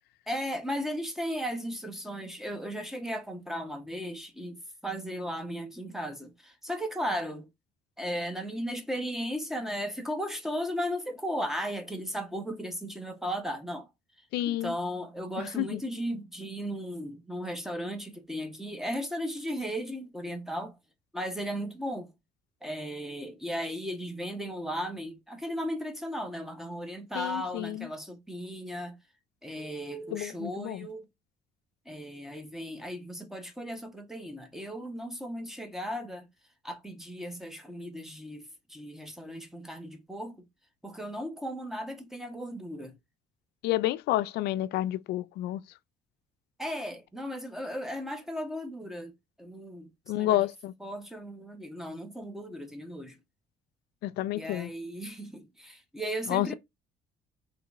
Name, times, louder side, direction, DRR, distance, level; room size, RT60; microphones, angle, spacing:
voice 1, 0.3-7.5 8.0-13.9 14.5-20.8 21.1-22.1 22.6-29.0 29.4-31.1 31.8-36.2 36.6-40.5 40.8-43.0 46.6-49.1 49.4-50.4 50.8-53.2 54.3-56.5, equal, ahead, 1.0 m, -36 dB
voice 2, 14.3-14.7 15.6-15.8 27.1-27.9 30.1-30.9 43.6-45.6 50.1-50.7 54.0-54.7 56.3-56.5, left 15 dB, 75° left, 0.4 m, -29 dB
3.7 x 3.1 x 3.5 m
cardioid pair, 110°, 17 cm